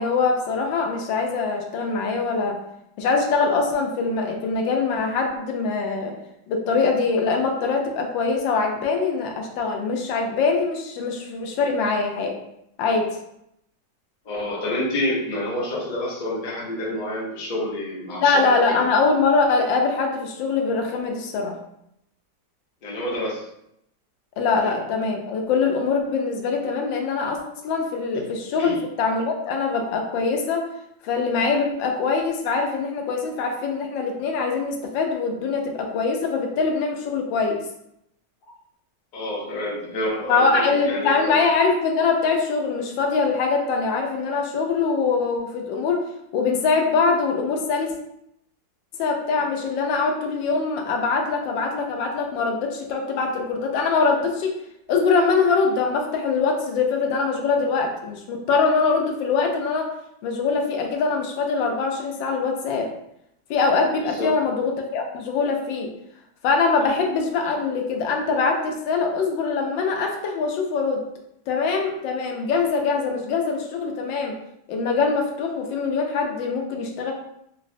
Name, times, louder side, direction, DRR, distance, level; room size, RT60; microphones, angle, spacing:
voice 1, 0.0-2.6 3.0-6.1 6.5-12.3 12.8-13.1 18.1-21.6 24.4-27.4 27.6-30.7 31.0-37.6 40.3-46.0 46.3-47.9 49.0-54.5 54.9-59.9 60.2-62.9 63.5-65.9 66.4-71.0 71.5-74.3 74.7-77.1, left 4 dB, 80° left, 2 dB, 1.3 m, -23 dB
voice 2, 14.2-18.8 22.8-23.4 24.6-24.7 28.6-28.8 39.1-41.3 64.0-64.3 66.9-67.0, left 1 dB, 50° left, -4 dB, 0.5 m, -28 dB
3.8 x 2.0 x 2.6 m, 0.77 s
omnidirectional pair, 2.0 m